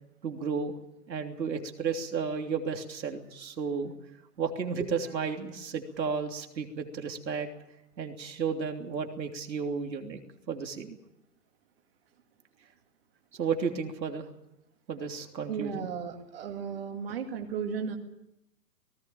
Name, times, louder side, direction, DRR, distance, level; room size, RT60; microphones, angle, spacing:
voice 1, 0.2-0.7 1.1-3.9 4.4-7.5 8.0-10.2 10.5-11.0 13.4-14.3 14.9-15.9 17.1-17.2, right 5 dB, 85° right, 4 dB, 3.3 m, -33 dB
voice 2, 15.5-18.0, right 6 dB, 35° right, 3 dB, 2.2 m, -35 dB
18.5 x 17.0 x 8.8 m, 0.87 s
hypercardioid pair, 175°, 50 cm